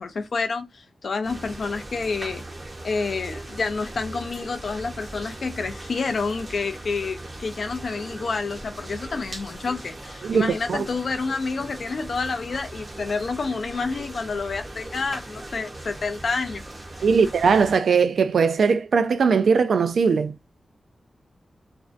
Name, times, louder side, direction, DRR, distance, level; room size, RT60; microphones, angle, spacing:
voice 1, 0.0-2.4 2.8-16.6, left 4 dB, 55° left, 0.3 m, -29 dB
sound 1, 1.2-17.8, right 1 dB, 25° right, 0.5 m, -39 dB
voice 2, 10.2-10.8 17.0-20.4, right 5 dB, 80° right, 0.3 m, -20 dB
2.4 x 2.1 x 2.4 m
wide cardioid pair, 170°, 0 cm